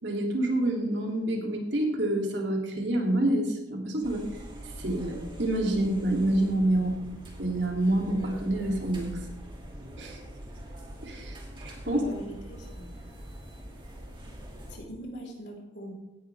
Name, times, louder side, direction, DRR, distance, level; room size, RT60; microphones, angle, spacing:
voice 1, 0.0-4.3 4.8-7.0 7.4-9.2 10.0-10.2 11.0-12.0, right 1 dB, 80° right, 0 dB, 2.8 m, -27 dB
sound 1, 4.0-14.8, right 1 dB, 25° right, 2.5 m, -43 dB
voice 2, 11.8-13.0 14.7-15.9, equal, 80° left, -2 dB, 3.8 m, -42 dB
17.0 x 11.0 x 3.5 m, 0.97 s
head